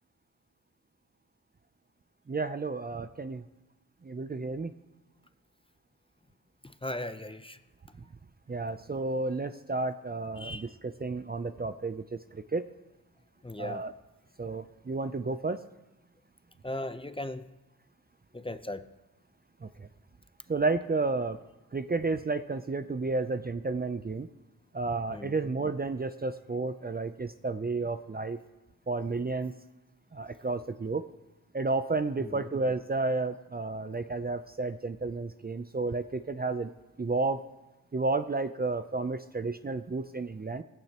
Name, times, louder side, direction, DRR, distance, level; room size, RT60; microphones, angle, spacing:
voice 1, 2.3-3.4 4.0-4.7 8.5-12.7 13.6-13.9 14.4-15.6 19.6-19.9 20.5-21.4 21.7-24.3 24.7-28.4 28.9-29.6 30.1-31.1 31.5-36.7 37.0-37.4 37.9-40.6, right 3 dB, 25° right, 10 dB, 0.5 m, -32 dB
voice 2, 6.6-7.6 10.4-10.7 13.4-13.8 16.6-17.4 18.3-18.9 25.1-25.4 32.2-32.5, left 1 dB, 15° left, 10 dB, 0.6 m, -37 dB
19.0 x 15.5 x 3.0 m, 1.0 s
cardioid pair, 75°, 36 cm